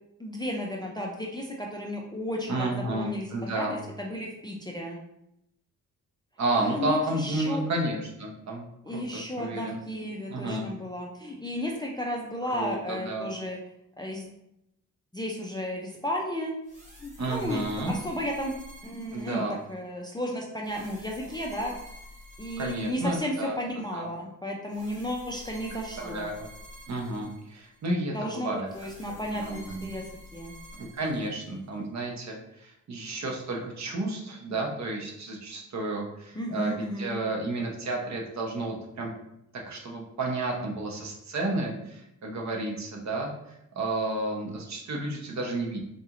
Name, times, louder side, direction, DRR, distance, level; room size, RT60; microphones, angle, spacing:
voice 1, 0.2-5.0 6.5-7.6 8.9-13.6 14.0-14.2 15.1-16.5 17.0-18.5 18.8-19.4 19.7-21.7 22.4-26.3 28.1-30.1 30.3-30.5 36.4-37.2, left 1 dB, 15° left, -1 dB, 0.3 m, -33 dB
voice 2, 2.5-3.8 6.4-9.8 10.3-10.7 12.5-13.3 17.2-17.9 19.1-19.6 22.6-24.1 26.0-26.5 26.9-28.7 29.0-30.0 30.8-39.1 39.6-45.8, right 2 dB, 60° right, 0 dB, 0.8 m, -32 dB
sound 1, 16.6-19.8 20.6-23.7 24.7-27.8 28.7-31.8, left 1 dB, 25° right, 0.9 m, -48 dB
4.0 x 2.9 x 2.4 m, 0.81 s
wide cardioid pair, 150°, 32 cm